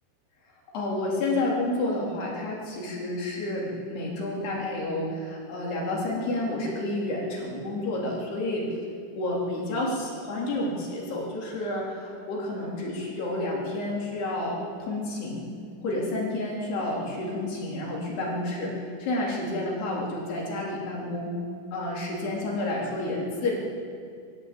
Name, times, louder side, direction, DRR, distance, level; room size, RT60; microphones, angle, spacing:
voice 1, 0.7-8.7 9.1-15.5 15.8-21.4 21.7-23.5, left 2 dB, 65° left, -3 dB, 5.8 m, -30 dB
22.0 x 15.5 x 8.6 m, 2.3 s
omnidirectional pair, 5.2 m